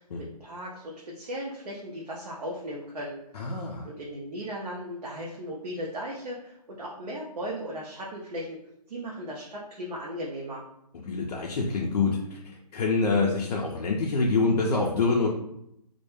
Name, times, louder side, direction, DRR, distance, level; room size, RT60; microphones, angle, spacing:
voice 1, 0.0-3.2 3.8-8.6 8.9-10.6, equal, 75° right, -4 dB, 0.6 m, -37 dB
voice 2, 3.3-3.9 11.1-12.4 12.7-15.3, left 3 dB, 70° left, -2 dB, 0.4 m, -26 dB
2.2 x 2.0 x 3.0 m, 0.78 s
hypercardioid pair, 165°, 21 cm